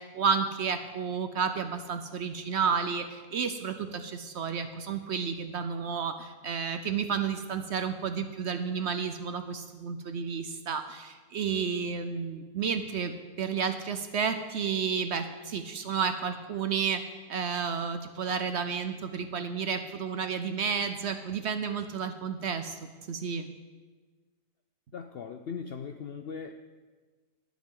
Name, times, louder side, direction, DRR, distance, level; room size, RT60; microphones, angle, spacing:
voice 1, 0.0-13.1 13.4-17.0 17.3-22.8 23.1-23.5, right 6 dB, 60° right, 8 dB, 0.8 m, -31 dB
voice 2, 24.9-26.5, left 6 dB, 65° left, 6 dB, 0.6 m, -39 dB
20.5 x 7.3 x 3.8 m, 1.3 s
omnidirectional pair, 1.6 m